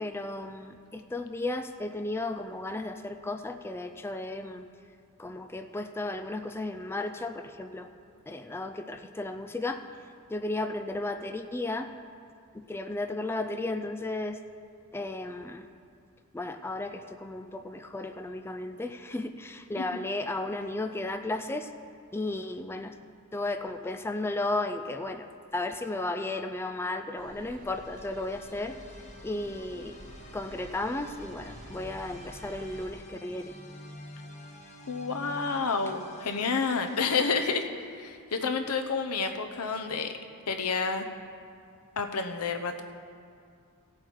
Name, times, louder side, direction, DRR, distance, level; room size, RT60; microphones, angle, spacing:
voice 1, 0.0-4.7 5.2-7.9 8.3-9.8 10.3-11.9 12.5-14.4 14.9-15.7 16.3-21.7 22.1-22.9 23.3-28.8 29.2-30.0 30.3-33.6 38.4-38.6, left 2 dB, 10° left, 7 dB, 0.4 m, -34 dB
sound 1, 27.2-32.9, right 1 dB, 40° right, 1.6 m, -49 dB
sound 2, 27.6-37.6, left 1 dB, 30° left, 1.0 m, -48 dB
voice 2, 34.9-40.1 40.5-41.0 42.0-42.8, left 4 dB, 90° left, 6 dB, 0.9 m, -29 dB
17.5 x 7.5 x 4.6 m, 2.3 s
head